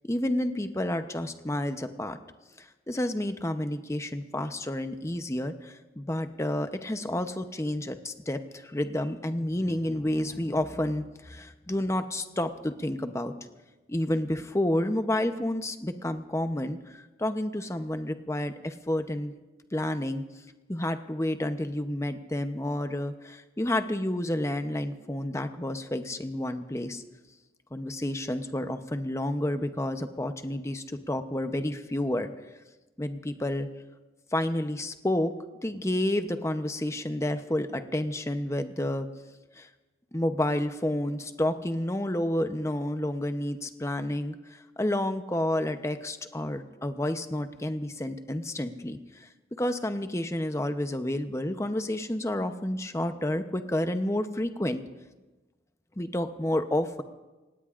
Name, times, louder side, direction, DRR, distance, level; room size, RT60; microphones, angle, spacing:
voice 1, 0.1-2.2 2.6-13.3 13.9-19.3 19.7-20.2 20.7-27.0 27.7-32.3 33.0-33.7 34.3-35.3 35.6-39.1 39.6-39.7 40.1-49.3 49.6-54.8 56.0-57.0, left 1 dB, 15° left, 8 dB, 0.8 m, -30 dB
26.5 x 18.5 x 2.5 m, 1.2 s
head